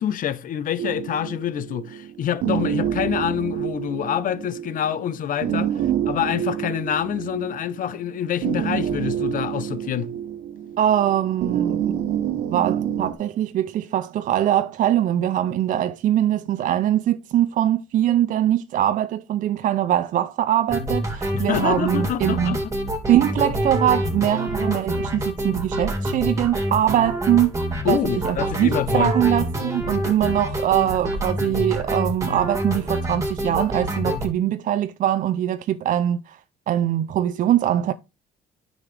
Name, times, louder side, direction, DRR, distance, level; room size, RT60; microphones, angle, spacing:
voice 1, 0.0-5.7 6.1-10.1 21.3-22.7 27.8-29.1, left 10 dB, 55° left, 0.8 m, -26 dB
sound 1, 0.8-13.1, right 10 dB, 75° right, 1.1 m, -28 dB
voice 2, 10.8-12.0 12.5-22.6 23.1-27.6 27.8-28.0 28.2-36.4 36.7-37.9, right 11 dB, 50° right, 0.4 m, -22 dB
sound 2, 20.7-34.3, equal, 20° right, 2.6 m, -26 dB
9.7 x 6.4 x 3.3 m
cardioid pair, 110°, 17 cm